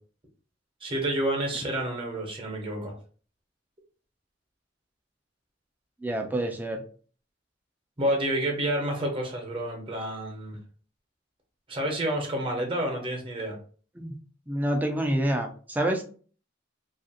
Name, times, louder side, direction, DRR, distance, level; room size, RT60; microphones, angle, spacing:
voice 1, 0.8-2.9 8.0-10.6 11.7-13.6, right 1 dB, 30° right, 1 dB, 0.8 m, -29 dB
voice 2, 6.0-6.8 14.0-14.2 14.5-16.0, right 1 dB, 10° right, 3 dB, 0.4 m, -27 dB
2.8 x 2.5 x 2.7 m, 0.41 s
head